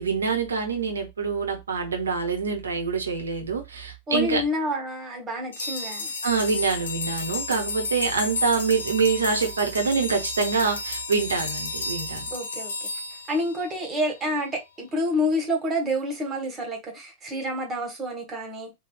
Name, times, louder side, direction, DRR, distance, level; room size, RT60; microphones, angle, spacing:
voice 1, 0.0-4.4 6.2-12.2, right 5 dB, 70° right, 0.8 m, -25 dB
voice 2, 4.1-6.1 8.2-8.3 12.3-12.7 13.3-18.7, left 1 dB, 20° right, 1.3 m, -28 dB
sound 1, 5.5-14.0, left 3 dB, 65° left, 0.6 m, -32 dB
3.5 x 2.3 x 2.3 m
figure-of-eight pair, 90°, 0 cm